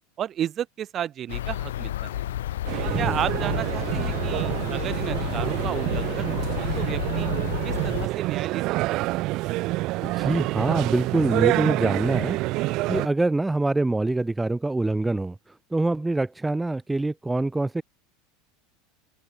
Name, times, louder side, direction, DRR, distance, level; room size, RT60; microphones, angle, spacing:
voice 1, 0.2-2.2 3.0-7.3 7.6-9.1, right 10 dB, 40° right, 3.0 m, -33 dB
sound 1, 1.3-8.1, left 13 dB, 80° left, 1.5 m, -31 dB
sound 2, 2.7-13.1, right 20 dB, 55° right, 0.6 m, -27 dB
voice 2, 2.8-3.2 10.0-12.4 12.9-17.8, right 2 dB, 10° right, 1.3 m, -25 dB
open air
hypercardioid pair, 95°, 0 cm